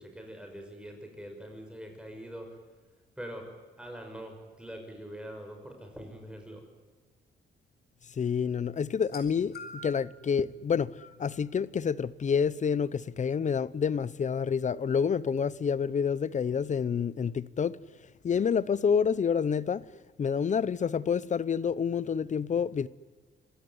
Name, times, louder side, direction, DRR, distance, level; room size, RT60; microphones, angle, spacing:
voice 1, 0.0-2.5 3.2-3.5 3.8-6.6, equal, 5° right, 6.0 m, -43 dB
voice 2, 8.2-17.8 18.2-19.9 20.2-22.9, left 6 dB, 40° left, 0.8 m, -28 dB
sound 1, 8.9-10.1 11.0-11.2 12.2-12.3, left 2 dB, 55° left, 5.5 m, -45 dB
26.5 x 17.0 x 9.6 m
cardioid pair, 105°, 19 cm